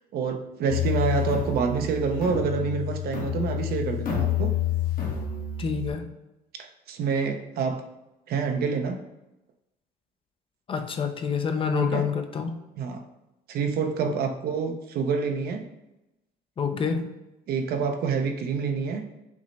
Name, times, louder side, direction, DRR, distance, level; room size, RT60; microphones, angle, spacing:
voice 1, 0.1-4.5 6.5-7.8 8.3-9.0 11.8-12.1 12.8-13.0 13.5-15.7 17.5-19.0, right 5 dB, 65° right, 5 dB, 0.6 m, -27 dB
sound 1, 0.7-5.9, left 8 dB, 55° left, 1.0 m, -28 dB
voice 2, 5.6-6.1 10.7-12.5 14.0-14.1 16.6-17.1, left 6 dB, 30° left, 6 dB, 0.4 m, -27 dB
6.0 x 2.1 x 4.0 m, 0.95 s
cardioid pair, 110°, 17 cm